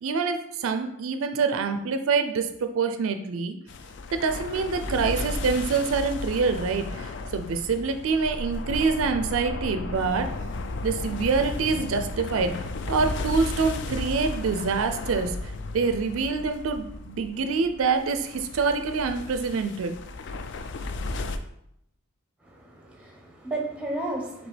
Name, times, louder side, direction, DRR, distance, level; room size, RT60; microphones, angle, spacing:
voice 1, 0.0-3.6 4.1-10.3 10.8-12.5 12.9-15.4 15.7-19.9, right 4 dB, 75° right, 7 dB, 0.4 m, -26 dB
sound 1, 3.7-21.4, left 2 dB, 55° left, 0.3 m, -34 dB
voice 2, 22.4-24.5, right 2 dB, 5° right, 0 dB, 0.7 m, -33 dB
5.0 x 3.2 x 3.2 m, 0.77 s
head